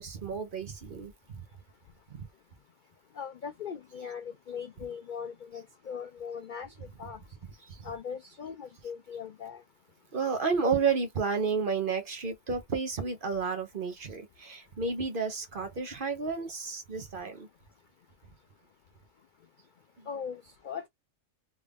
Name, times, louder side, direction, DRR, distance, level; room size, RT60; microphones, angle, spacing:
voice 1, 0.0-1.4 2.1-2.2 7.7-7.9 10.1-17.5 20.0-20.1, right 5 dB, 45° right, 1.0 m, -31 dB
voice 2, 3.1-7.2 7.8-9.6 20.1-20.9, left 7 dB, 60° left, 0.5 m, -40 dB
3.7 x 2.4 x 3.4 m
omnidirectional pair, 1.4 m